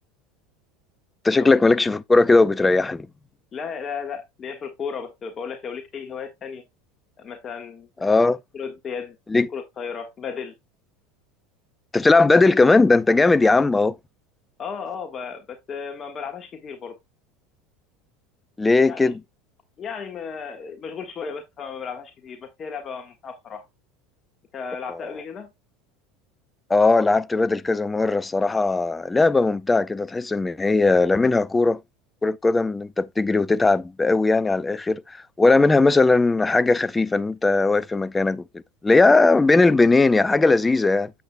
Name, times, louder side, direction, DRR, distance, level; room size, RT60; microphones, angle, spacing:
voice 1, 1.2-3.1 8.0-8.4 9.3-9.5 11.9-13.9 18.6-19.2 26.7-31.8 32.2-41.1, left 3 dB, 15° left, 0.6 m, -18 dB
voice 2, 3.5-6.6 7.2-8.1 8.5-9.2 9.5-10.5 14.6-17.0 18.9-19.1 19.8-23.6 24.5-25.5, left 6 dB, 35° left, 1.4 m, -34 dB
8.5 x 8.2 x 2.2 m
supercardioid pair, 100°, 0 cm